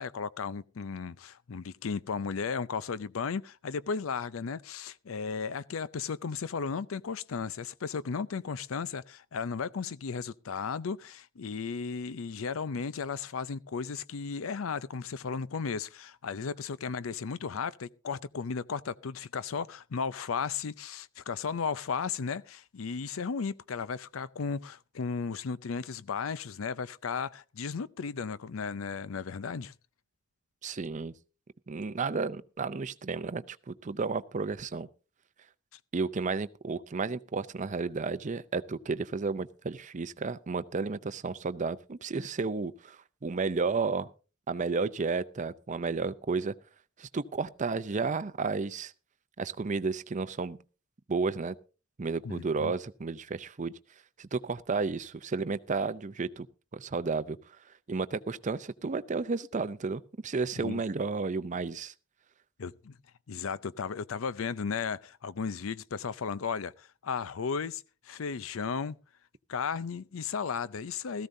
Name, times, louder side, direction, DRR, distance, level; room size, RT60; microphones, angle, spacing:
voice 1, 0.0-29.7 52.2-52.7 60.6-60.8 62.6-62.9 63.3-69.0 69.5-71.3, left 5 dB, 85° left, 0.5 m, -35 dB
voice 2, 30.6-31.1 31.7-34.9 35.9-44.1 44.5-46.5 47.0-48.9 49.4-50.6 51.1-51.6 52.0-53.7 54.2-56.5 56.7-57.4 57.9-61.9, right 4 dB, 35° right, 0.5 m, -32 dB
17.0 x 14.0 x 2.7 m
head